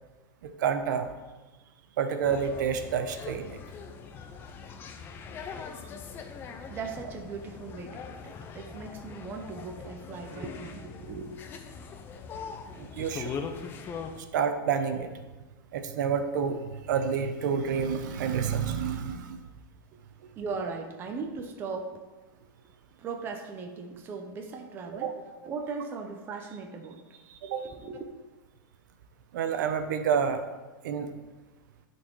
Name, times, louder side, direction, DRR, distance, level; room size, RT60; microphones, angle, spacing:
voice 1, 0.4-1.1 2.0-3.6 12.7-13.4 14.3-15.1 15.7-19.4 25.0-25.1 27.3-27.7 29.3-30.4 30.8-31.1, right 7 dB, 65° right, 8 dB, 0.8 m, -29 dB
sound 1, 2.2-14.2, left 6 dB, 20° left, 0.6 m, -41 dB
voice 2, 6.7-11.4 20.4-22.0 23.0-27.0 27.5-28.1, right 4 dB, 20° right, 4 dB, 0.6 m, -38 dB
11.5 x 4.5 x 4.6 m, 1.2 s
supercardioid pair, 160°, 11 cm